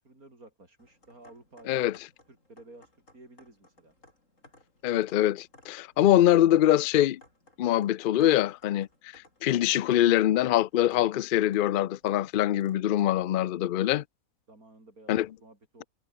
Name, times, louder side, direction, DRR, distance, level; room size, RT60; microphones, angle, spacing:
voice 1, 0.0-1.9 2.3-3.9 14.5-15.8, right 2 dB, 90° right, 6.7 m, -53 dB
sound 1, 0.8-13.3, left 2 dB, 60° left, 7.2 m, -61 dB
voice 2, 4.8-7.2 7.6-8.9 9.1-14.0 15.1-15.3, left 12 dB, 85° left, 0.4 m, -23 dB
omnidirectional pair, 1.5 m